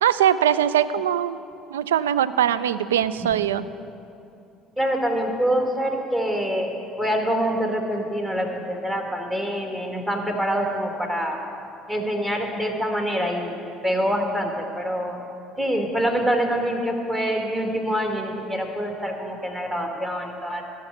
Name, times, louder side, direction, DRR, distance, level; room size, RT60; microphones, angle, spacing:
voice 1, 0.0-1.4 1.7-3.7, right 10 dB, 70° right, 16 dB, 0.3 m, -21 dB
voice 2, 4.8-6.7 7.0-11.4 11.9-13.6 13.8-15.2 15.6-20.6, equal, 15° right, 2 dB, 1.8 m, -25 dB
16.0 x 5.9 x 8.0 m, 2.7 s
figure-of-eight pair, 55°, 0 cm